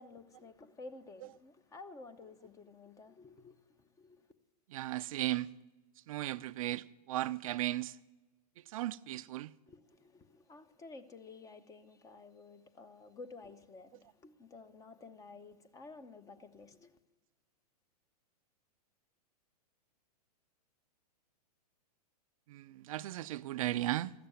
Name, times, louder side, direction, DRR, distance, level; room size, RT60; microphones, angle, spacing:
voice 1, 0.0-4.3 9.7-17.0, left 3 dB, 15° left, 0.7 m, -52 dB
voice 2, 4.7-5.5 6.1-8.0 8.6-9.5 22.5-24.1, right 15 dB, 55° right, 0.4 m, -36 dB
13.5 x 6.8 x 9.0 m
hypercardioid pair, 130°, 21 cm